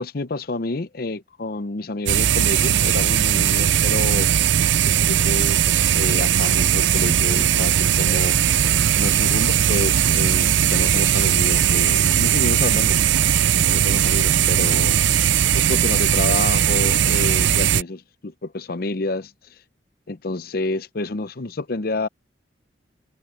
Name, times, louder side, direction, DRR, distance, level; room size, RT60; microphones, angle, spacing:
voice 1, 0.0-4.6 4.8-15.1 15.5-19.6 20.1-22.1, left 2 dB, 55° left, 0.7 m, -29 dB
sound 1, 2.1-17.8, right 10 dB, 85° right, 0.5 m, -18 dB
head